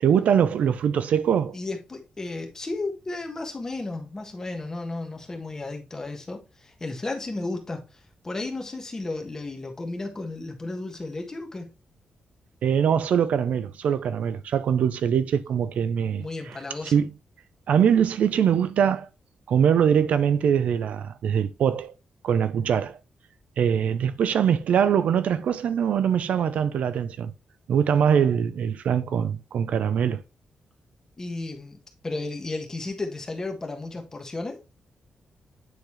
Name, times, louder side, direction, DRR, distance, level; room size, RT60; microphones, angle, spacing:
voice 1, 0.0-1.6 12.6-16.6 16.8-17.1 17.7-19.1 19.5-21.9 22.2-23.0 23.6-27.3 27.7-30.2, right 8 dB, 75° right, 0.5 m, -22 dB
voice 2, 1.5-7.8 8.2-11.7 16.2-16.9 31.2-34.6, left 2 dB, 25° left, 1.5 m, -33 dB
9.2 x 3.9 x 3.2 m
wide cardioid pair, 140°, 2 cm